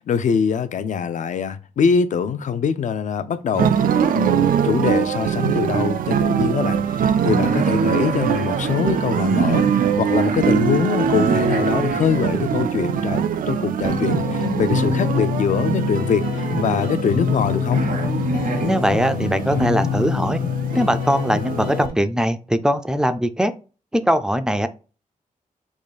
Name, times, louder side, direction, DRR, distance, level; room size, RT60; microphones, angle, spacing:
voice 1, 0.1-3.7 4.1-17.8, left 6 dB, 65° left, 0.5 m, -23 dB
sound 1, 3.5-21.9, right 8 dB, 90° right, 0.4 m, -23 dB
sound 2, 5.2-5.9 6.1-6.2 6.6-14.8 15.4-17.4 17.7-19.7, right 4 dB, 70° right, 0.9 m, -28 dB
sound 3, 13.9-21.9, left 6 dB, 85° left, 1.3 m, -25 dB
voice 2, 18.6-20.4 20.7-23.5 23.9-24.7, equal, 5° right, 0.3 m, -21 dB
3.7 x 3.0 x 4.1 m
wide cardioid pair, 155°, 14 cm